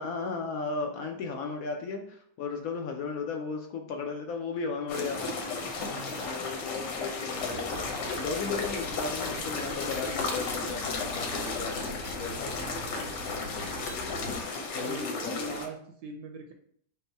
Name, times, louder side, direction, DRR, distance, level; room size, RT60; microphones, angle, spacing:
voice 1, 0.0-5.4 6.1-7.7 8.2-12.5 14.6-15.6, left 4 dB, 70° left, 3 dB, 0.9 m, -35 dB
sound 1, 4.9-15.7, left 3 dB, 90° left, 1.5 m, -34 dB
voice 2, 5.7-6.3 12.4-12.9 14.7-16.5, right 2 dB, 75° right, 4 dB, 1.1 m, -42 dB
sound 2, 5.8-6.6 6.9-7.2 7.5-7.8 8.1-8.3 8.6-10.6 10.9-12.7 13.6-14.0, left 1 dB, 15° left, 0.6 m, -52 dB
sound 3, 7.3-14.4, left 1 dB, 50° left, 1.3 m, -42 dB
5.3 x 2.1 x 4.4 m, 0.64 s
omnidirectional pair, 1.9 m